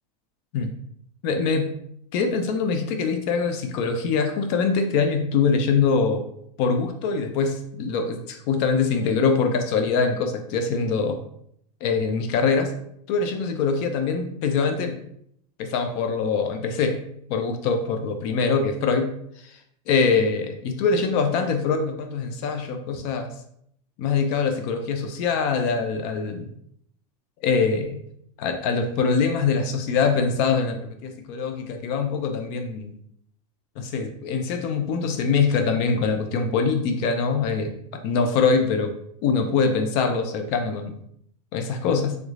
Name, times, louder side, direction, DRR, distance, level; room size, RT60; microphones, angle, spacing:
voice 1, 1.2-1.7 2.1-6.2 6.6-11.2 11.8-12.7 13.1-15.0 15.6-17.0 17.3-19.1 19.4-19.6 19.9-23.3 24.0-26.5 27.4-28.0 28.4-32.9 33.8-37.7 38.0-38.9 39.2-41.0 41.5-42.2, left 5 dB, 40° left, 6 dB, 0.4 m, -23 dB
3.1 x 3.1 x 2.4 m, 0.69 s
supercardioid pair, 165°, 20 cm